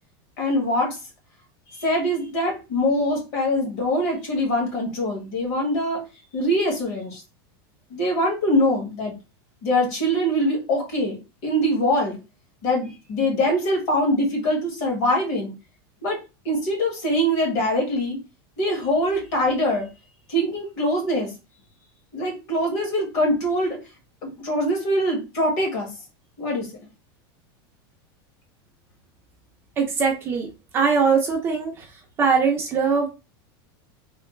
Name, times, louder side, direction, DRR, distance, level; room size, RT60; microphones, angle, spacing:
voice 1, 0.4-1.0 1.8-6.0 6.3-7.2 7.9-9.1 9.6-12.2 12.6-15.5 16.0-16.2 16.4-18.2 18.6-19.9 20.3-21.3 22.1-23.8 24.2-25.9 26.4-26.7, equal, 45° left, 0 dB, 1.6 m, -23 dB
voice 2, 29.8-30.5 30.7-31.9 32.2-33.1, right 5 dB, 20° right, 0 dB, 0.4 m, -21 dB
3.2 x 2.4 x 3.1 m, 0.28 s
supercardioid pair, 180°, 13 cm